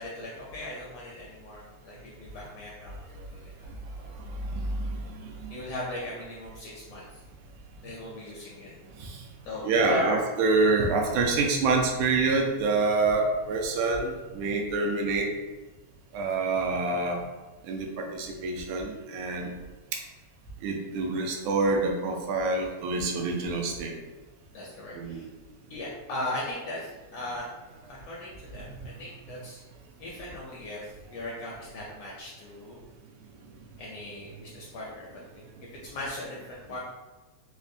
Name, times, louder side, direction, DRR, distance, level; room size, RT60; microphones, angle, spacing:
voice 1, 0.0-3.0 3.3-3.7 4.0-4.1 5.5-7.1 7.8-8.7 9.4-10.2 24.5-25.3 25.7-27.5 27.9-29.6 30.0-32.8 33.8-36.8, left 1 dB, 80° left, -5 dB, 1.4 m, -38 dB
voice 2, 4.3-5.6 9.0-9.2 9.6-15.3 16.1-17.2 17.7-19.5 20.6-23.9 24.9-25.3 28.5-28.6, right 3 dB, 85° right, 1 dB, 2.0 m, -27 dB
5.0 x 2.1 x 2.6 m, 1.2 s
omnidirectional pair, 3.3 m